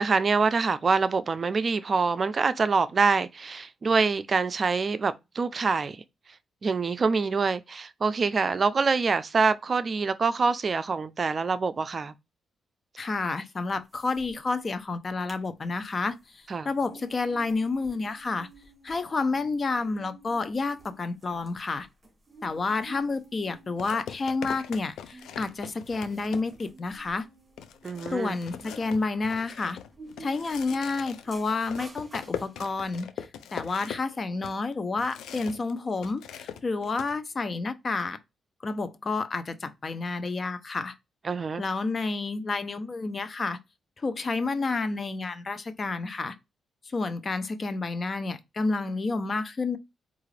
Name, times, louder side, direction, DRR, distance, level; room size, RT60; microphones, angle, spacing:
voice 1, 0.0-6.0 6.6-12.1 16.5-16.7 27.8-28.3 41.2-41.6, right 4 dB, 45° right, 0.4 m, -25 dB
voice 2, 13.0-18.5 18.8-21.9 22.4-27.3 28.1-29.8 30.2-38.2 38.6-41.0 41.6-43.6 44.0-46.4 46.8-49.8, left 3 dB, 40° left, 0.6 m, -30 dB
sound 1, 13.7-14.3 14.6-14.7 15.0-15.4 15.8-33.0, right 2 dB, 25° right, 2.1 m, -52 dB
sound 2, 22.8-23.0 23.8-26.8 27.2-27.3 27.6-35.7 36.0-37.1, left 8 dB, 90° left, 0.5 m, -41 dB
4.7 x 2.5 x 3.2 m
cardioid pair, 75°, 0 cm